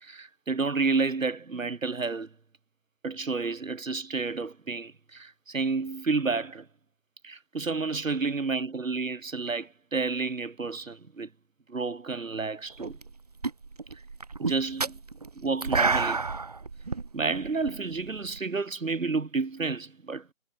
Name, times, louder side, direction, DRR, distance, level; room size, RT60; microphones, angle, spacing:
voice 1, 0.0-2.3 3.0-6.7 7.2-11.3 11.7-13.0 14.4-15.0 15.4-16.2 17.1-20.3, right 4 dB, 70° right, 2.3 m, -30 dB
sound 1, 12.8-13.1 13.4-18.4, right 4 dB, 30° right, 2.8 m, -30 dB
figure-of-eight pair, 180°, 41 cm